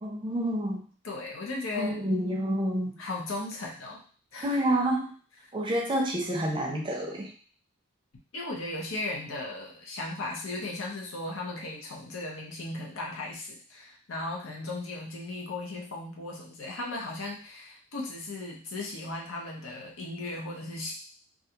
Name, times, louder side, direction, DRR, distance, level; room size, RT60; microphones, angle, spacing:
voice 1, 0.0-0.9 1.7-3.0 4.4-5.1 5.5-7.3, right 1 dB, 25° right, -1 dB, 0.5 m, -28 dB
voice 2, 1.0-2.0 3.0-4.0 4.3-4.6 8.3-20.9, left 2 dB, 65° left, -1 dB, 0.7 m, -36 dB
2.4 x 2.3 x 2.8 m, 0.41 s
head